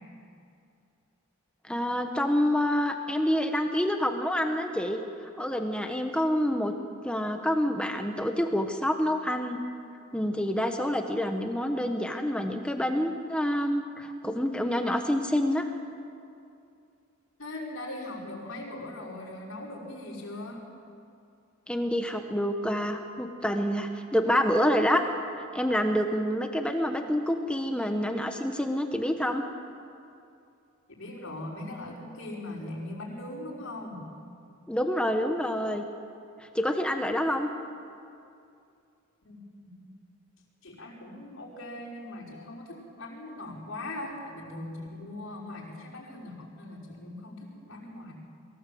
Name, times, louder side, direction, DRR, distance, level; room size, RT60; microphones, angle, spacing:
voice 1, 1.7-5.0 5.4-6.7 7.0-9.6 10.1-15.6 21.7-25.0 25.3-29.4 34.7-35.8 36.5-37.5, equal, 5° left, 5 dB, 1.0 m, -27 dB
voice 2, 17.4-20.7 30.9-34.1 39.2-39.9 40.6-48.1, left 1 dB, 65° left, -4 dB, 5.4 m, -40 dB
23.0 x 16.5 x 7.7 m, 2.5 s
head